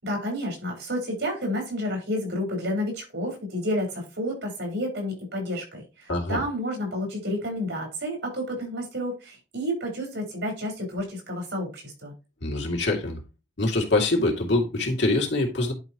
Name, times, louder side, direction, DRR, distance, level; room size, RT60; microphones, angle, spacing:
voice 1, 0.0-12.1, equal, 80° right, 5.0 m, -30 dB
voice 2, 6.1-6.4 12.4-13.2 13.6-15.7, left 2 dB, 80° left, 2.6 m, -24 dB
11.0 x 4.9 x 3.0 m
head